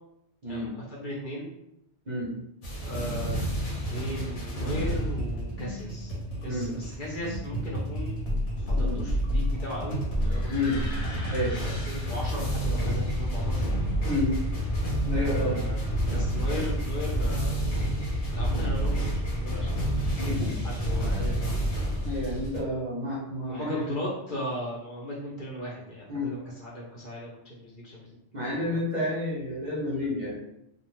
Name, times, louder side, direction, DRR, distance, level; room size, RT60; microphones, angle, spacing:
voice 1, 0.5-1.5 2.8-6.1 6.4-8.2 8.6-10.8 11.4-13.8 15.1-17.7 18.3-19.9 20.2-21.9 23.5-28.2 28.5-28.8, equal, 50° left, -5 dB, 0.7 m, -37 dB
sound 1, 2.6-22.6, equal, 80° left, 1.1 m, -29 dB
voice 2, 14.0-14.3 15.1-15.6 20.4-20.5 22.0-23.9 26.1-26.3 28.3-30.3, left 1 dB, 45° right, -6 dB, 0.8 m, -30 dB
2.7 x 2.0 x 3.0 m, 0.82 s
omnidirectional pair, 1.2 m